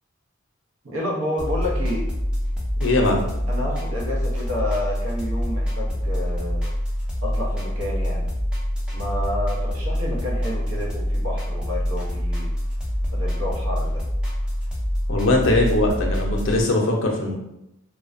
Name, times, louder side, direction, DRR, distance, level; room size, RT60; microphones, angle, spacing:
voice 1, 0.8-2.0 3.5-6.6 7.2-8.3 8.9-12.5 13.1-14.0, left 1 dB, 80° right, -3 dB, 0.7 m, -30 dB
sound 1, 1.4-16.6, equal, 5° right, 0.4 m, -26 dB
voice 2, 2.8-3.2 15.1-17.3, left 2 dB, 70° left, 1 dB, 0.5 m, -20 dB
2.5 x 2.1 x 2.4 m, 0.88 s
head